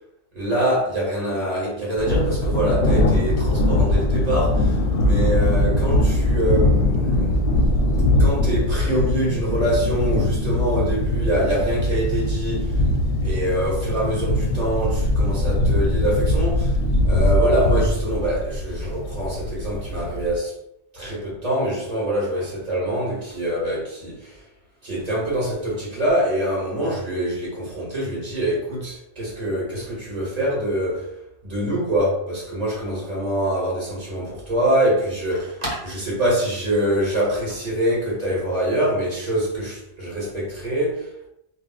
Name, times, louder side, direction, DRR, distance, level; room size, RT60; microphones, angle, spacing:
voice 1, 0.3-7.4 8.1-12.8 13.2-16.8 17.1-20.5 20.9-24.4 24.8-31.1 31.4-41.3, right 1 dB, 35° right, 1.2 m, -24 dB
Thunder, 2.0-20.4, left 1 dB, 60° left, 0.7 m, -21 dB
2.5 x 2.0 x 3.8 m
omnidirectional pair, 1.2 m